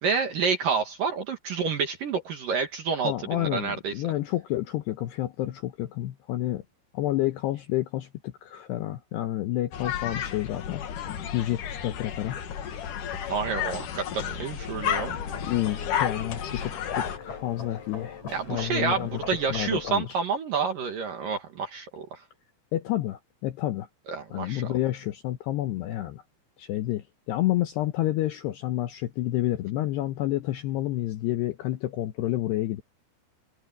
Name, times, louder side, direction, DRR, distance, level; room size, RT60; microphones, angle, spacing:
voice 1, 0.0-3.9 13.3-15.2 18.3-22.2 24.1-24.6, right 5 dB, 60° right, 2.5 m, -29 dB
voice 2, 3.0-6.6 6.9-10.8 11.1-12.4 15.5-18.2 18.5-19.2 19.5-20.2 22.7-23.9 24.3-26.2 26.6-32.8, left 14 dB, 80° left, 2.5 m, -29 dB
sound 1, 9.7-17.2, left 9 dB, 60° left, 2.3 m, -32 dB
sound 2, 14.9-20.0, left 4 dB, 35° left, 7.3 m, -41 dB
omnidirectional pair, 5.9 m